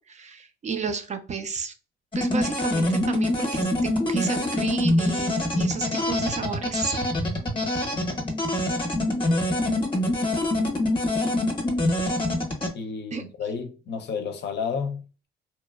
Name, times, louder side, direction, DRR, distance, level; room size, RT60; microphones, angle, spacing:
voice 1, 0.1-1.7 2.1-3.7 4.0-6.9 13.1-13.2, right 5 dB, 35° right, 0.4 m, -31 dB
sound 1, 2.1-12.7, left 1 dB, 25° left, 0.8 m, -25 dB
voice 2, 12.7-15.3, left 6 dB, 60° left, 0.5 m, -31 dB
2.8 x 2.1 x 2.2 m
cardioid pair, 90°, 20 cm